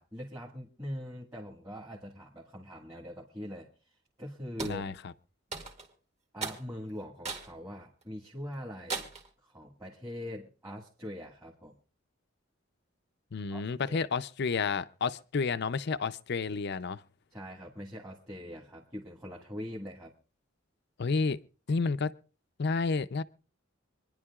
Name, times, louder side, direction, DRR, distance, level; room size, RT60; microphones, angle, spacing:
voice 1, 0.0-3.7 4.2-4.9 6.3-9.1 9.4-11.7 13.5-14.0 17.3-20.1, equal, 15° right, 1.7 m, -42 dB
voice 2, 4.6-4.9 13.3-17.0 21.0-21.4 21.7-22.1 22.6-23.2, left 4 dB, 55° left, 0.5 m, -30 dB
sound 1, 4.6-4.8 5.5-5.9 6.4-6.6 7.2-7.5 8.0-8.1 8.9-9.3, right 4 dB, 35° right, 2.1 m, -37 dB
26.0 x 10.5 x 2.4 m
head